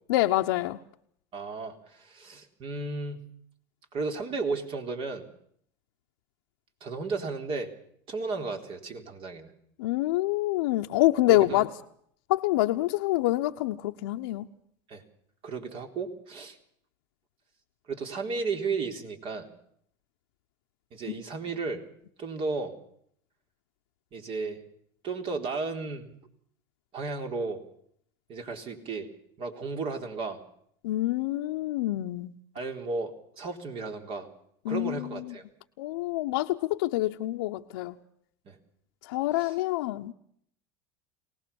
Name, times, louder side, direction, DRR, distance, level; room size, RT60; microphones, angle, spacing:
voice 1, 0.1-0.8 9.8-11.7 12.3-14.5 30.8-32.3 34.6-35.2 35.8-38.0 39.0-40.1, left 17 dB, 80° left, 0 dB, 0.9 m, -26 dB
voice 2, 1.3-3.2 3.9-5.2 6.8-7.7 8.1-9.5 11.3-11.6 14.9-15.0 15.4-16.6 17.9-19.5 20.9-21.8 22.2-22.7 24.1-24.6 25.0-26.1 26.9-27.6 28.3-29.1 29.4-30.4 32.5-34.3 34.7-35.4 38.5-38.6 39.3-39.6, right 4 dB, 50° right, 5 dB, 3.9 m, -34 dB
23.5 x 18.5 x 7.1 m, 0.66 s
supercardioid pair, 100°, 12 cm